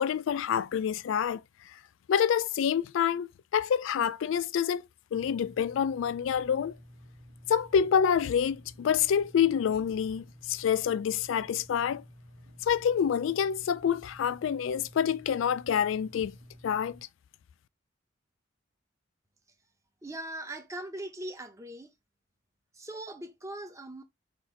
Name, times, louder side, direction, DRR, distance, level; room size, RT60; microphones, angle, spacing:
voice 1, 0.0-1.4 2.1-4.8 5.1-6.7 7.5-12.0 12.7-16.3 16.6-17.0, left 8 dB, 75° left, 0.3 m, -27 dB
sound 1, 5.1-17.0, equal, 80° right, 1.8 m, -53 dB
voice 2, 20.0-21.9 22.7-24.0, right 1 dB, 15° right, 0.8 m, -40 dB
4.3 x 2.6 x 4.5 m
head